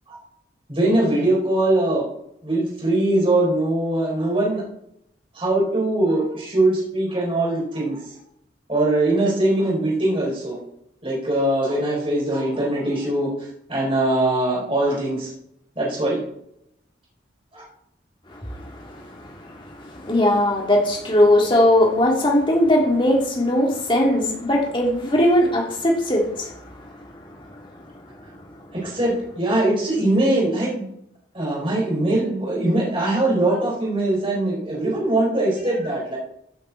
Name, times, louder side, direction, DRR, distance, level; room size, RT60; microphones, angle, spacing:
voice 1, 0.7-2.0 2.4-4.6 5.3-8.1 8.7-10.6 11.0-15.3 15.8-16.2 17.5-17.6 28.7-30.9 31.3-36.2, right 1 dB, 30° right, -4 dB, 4.6 m, -21 dB
voice 2, 18.3-27.0 27.2-27.6, left 1 dB, 25° left, -2 dB, 3.2 m, -20 dB
16.0 x 8.3 x 4.2 m, 0.75 s
head